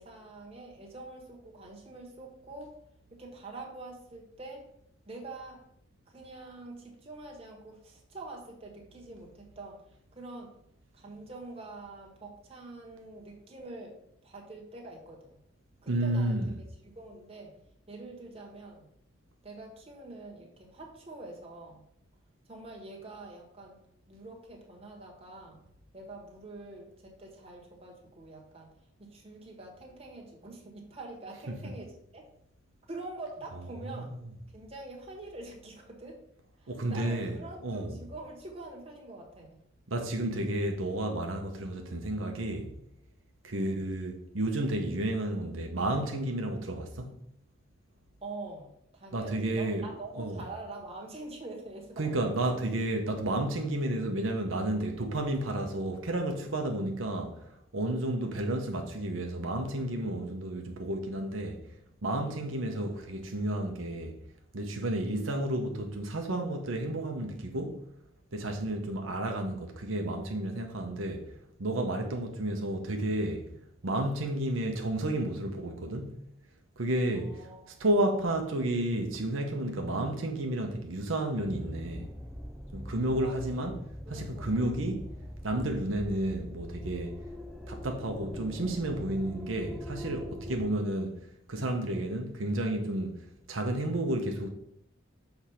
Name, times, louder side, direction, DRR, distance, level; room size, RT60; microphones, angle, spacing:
voice 1, 0.0-2.8 3.1-4.7 5.1-5.6 6.1-10.5 10.9-13.9 14.2-15.4 15.8-16.4 16.8-17.5 17.9-18.8 19.4-21.8 22.5-23.8 24.1-25.6 25.9-28.7 29.0-32.3 32.9-34.2 34.5-36.2 36.6-39.6 43.5-43.8 48.2-52.3 58.1-58.4 72.0-72.3 77.1-77.9 83.2-83.6 84.0-84.5, right 2 dB, 30° right, 1.5 m, -45 dB
voice 2, 15.9-16.5 31.5-31.7 33.9-34.1 36.7-37.4 37.6-38.0 39.9-42.7 43.4-47.1 49.1-49.9 50.2-50.4 52.0-61.6 62.0-64.2 64.5-67.8 68.3-71.3 71.6-73.5 73.8-76.2 76.8-82.1 82.7-83.8 84.1-85.1 85.4-87.1 87.7-91.1 91.5-94.5, right 1 dB, 85° right, 0.9 m, -31 dB
sound 1, 81.4-90.7, equal, ahead, 0.7 m, -42 dB
6.6 x 3.5 x 5.7 m
head